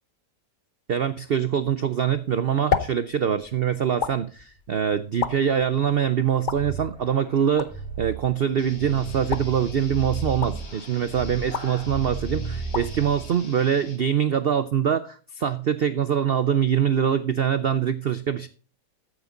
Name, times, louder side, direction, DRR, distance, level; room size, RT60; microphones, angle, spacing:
voice 1, 0.9-7.7 8.0-18.5, right 8 dB, 75° right, 14 dB, 0.5 m, -24 dB
sound 1, 2.0-14.2, left 6 dB, 50° left, 0.6 m, -35 dB
sound 2, 6.5-13.4, right 4 dB, 20° left, 3.5 m, -35 dB
sound 3, 8.6-14.0, left 2 dB, 70° left, 3.3 m, -44 dB
14.0 x 8.1 x 3.8 m, 0.38 s
omnidirectional pair, 1.8 m